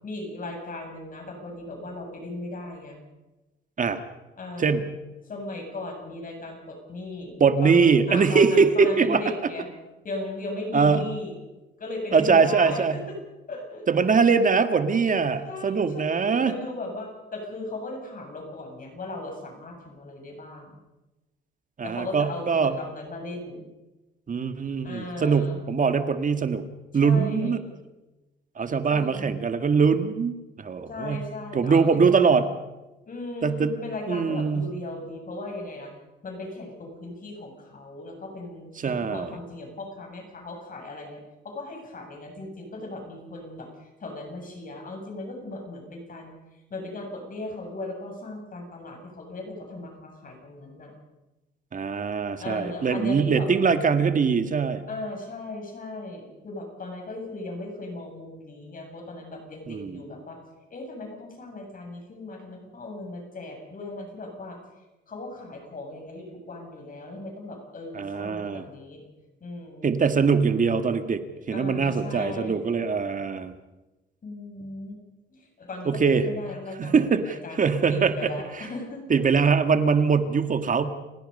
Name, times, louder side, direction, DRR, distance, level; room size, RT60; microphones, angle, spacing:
voice 1, 0.0-3.0 4.4-4.8 5.3-9.7 10.0-11.3 11.8-13.0 13.5-13.8 15.4-20.8 21.8-23.6 24.8-25.6 27.0-27.6 28.9-29.3 30.9-32.4 33.0-35.9 36.2-41.2 41.4-46.3 46.7-50.9 52.4-53.5 54.9-60.4 60.7-64.6 65.1-69.0 69.4-69.9 71.5-72.8 74.2-75.0 75.3-79.2, left 2 dB, 45° left, 2 dB, 7.8 m, -37 dB
voice 2, 7.4-9.2 10.7-11.1 12.1-13.0 13.9-16.5 21.8-22.7 24.3-26.6 26.9-27.6 28.6-31.2 31.5-32.5 33.4-33.7 34.1-34.7 38.8-39.4 51.7-54.8 59.7-60.0 67.9-68.6 69.8-71.2 71.5-73.5 75.9-76.2 76.8-78.3 79.1-80.8, right 5 dB, 40° right, 9 dB, 1.8 m, -22 dB
30.0 x 17.0 x 5.5 m, 1.1 s
cardioid pair, 90°, 20 cm